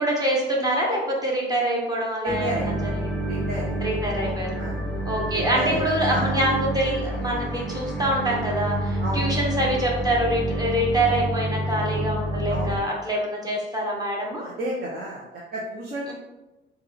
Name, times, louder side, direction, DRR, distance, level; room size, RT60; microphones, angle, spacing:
voice 1, 0.0-3.2 3.8-4.5 5.0-14.4 16.1-16.2, right 1 dB, 20° right, -2 dB, 1.0 m, -25 dB
voice 2, 2.2-2.7 3.3-3.8 4.2-4.8 5.3-5.8 6.1-6.3 9.0-9.3 12.5-12.7 14.4-16.1, right 1 dB, 50° right, -4 dB, 0.7 m, -31 dB
sound 1, 2.3-12.8, right 1 dB, 5° left, 0.6 m, -28 dB
3.5 x 2.3 x 3.4 m, 1.0 s
cardioid pair, 90°, 20 cm